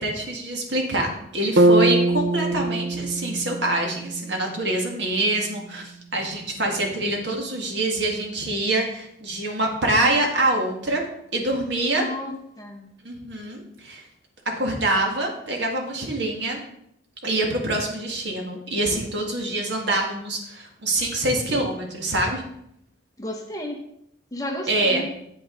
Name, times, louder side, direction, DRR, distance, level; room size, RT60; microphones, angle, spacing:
voice 1, 0.0-11.0 11.3-12.1 13.0-14.0 14.5-16.6 17.2-22.4 24.7-25.0, right 2 dB, 65° right, 1 dB, 2.0 m, -25 dB
sound 1, 1.6-5.6, right 2 dB, 80° right, 0.6 m, -23 dB
voice 2, 11.9-12.9 23.2-23.9 24.3-25.1, left 1 dB, 20° left, 2 dB, 1.0 m, -32 dB
8.5 x 8.5 x 3.9 m, 0.75 s
head